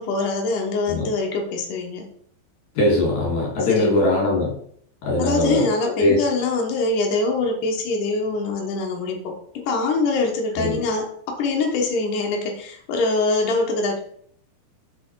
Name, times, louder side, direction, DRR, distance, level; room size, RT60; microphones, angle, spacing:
voice 1, 0.0-2.1 3.7-3.9 5.2-14.0, left 3 dB, 80° left, 1 dB, 1.8 m, -24 dB
voice 2, 2.7-4.5 5.0-5.7 6.0-6.3 10.6-10.8, left 1 dB, 50° left, -4 dB, 2.9 m, -21 dB
6.5 x 4.4 x 4.5 m, 0.64 s
omnidirectional pair, 5.3 m